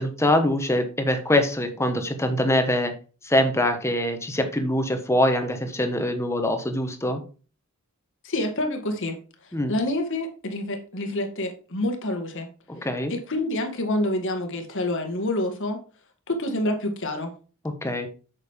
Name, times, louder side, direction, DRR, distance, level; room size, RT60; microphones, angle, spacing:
voice 1, 0.0-2.9 3.2-7.2 9.5-9.7 12.7-13.1 17.6-18.1, left 1 dB, 15° left, 6 dB, 1.3 m, -23 dB
voice 2, 8.2-9.2 9.7-12.5 13.1-15.8 16.3-17.3, left 1 dB, 60° left, 5 dB, 1.9 m, -27 dB
8.4 x 6.5 x 3.6 m, 0.36 s
head